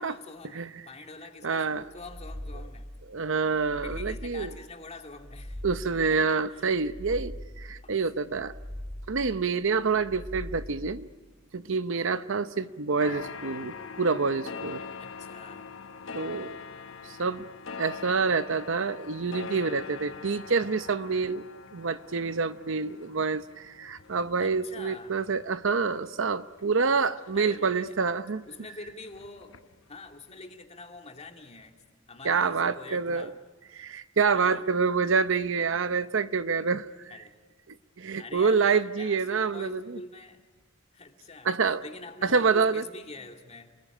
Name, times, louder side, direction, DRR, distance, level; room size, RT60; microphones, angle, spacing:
voice 1, 0.0-2.9 3.2-3.3 3.8-5.6 5.9-6.2 6.5-6.8 7.8-7.9 15.0-15.8 24.4-25.2 27.3-27.9 28.5-29.6 29.9-33.4 34.3-34.7 37.1-37.3 38.1-38.6 39.0-40.4 40.9-43.7, left 3 dB, 35° left, 4 dB, 2.4 m, -45 dB
voice 2, 1.4-1.9 3.1-4.5 5.6-8.5 9.1-11.1 11.5-14.8 16.1-16.6 17.0-17.4 17.8-21.4 21.7-28.4 32.2-33.3 33.7-36.9 38.0-40.0 41.4-41.8 42.2-42.8, right 5 dB, 70° right, 13 dB, 0.8 m, -27 dB
sound 1, 1.8-2.9 3.4-4.5 5.0-6.1 6.6-7.7 8.2-9.3 9.8-10.9, equal, 5° left, 5.1 m, -41 dB
sound 2, 13.0-28.1 28.5-29.9 30.1-30.2, left 5 dB, 70° left, 0.9 m, -43 dB
29.0 x 20.5 x 10.0 m, 1.4 s
head